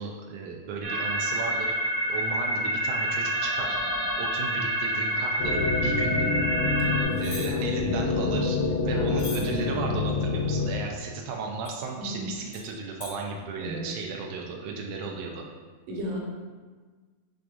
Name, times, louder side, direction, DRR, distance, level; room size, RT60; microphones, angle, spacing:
voice 1, 0.0-1.7 2.0-3.8 4.2-6.4 7.2-8.6 8.8-15.4, right 4 dB, 85° right, 0 dB, 1.4 m, -35 dB
sound 1, 0.8-7.0, equal, 40° left, 1.0 m, -28 dB
sound 2, 5.4-10.7, left 4 dB, 85° left, 1.1 m, -27 dB
voice 2, 7.0-7.6 8.8-9.2 12.0-12.3 13.6-13.9 15.9-16.2, equal, 70° right, -2 dB, 1.6 m, -35 dB
sound 3, 7.2-7.5 9.2-9.4 11.6-11.8 12.5-12.6 13.0-13.1, left 2 dB, 65° left, 0.9 m, -38 dB
6.1 x 3.5 x 2.5 m, 1.4 s
omnidirectional pair, 3.3 m